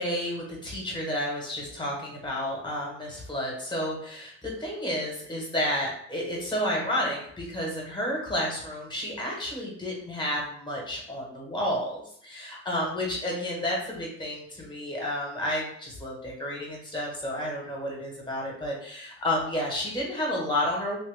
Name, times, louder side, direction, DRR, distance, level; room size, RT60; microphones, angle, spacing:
voice 1, 0.0-21.0, left 1 dB, 15° left, -2 dB, 1.6 m, -31 dB
3.2 x 2.8 x 3.6 m, 0.64 s
cardioid pair, 90°, 30 cm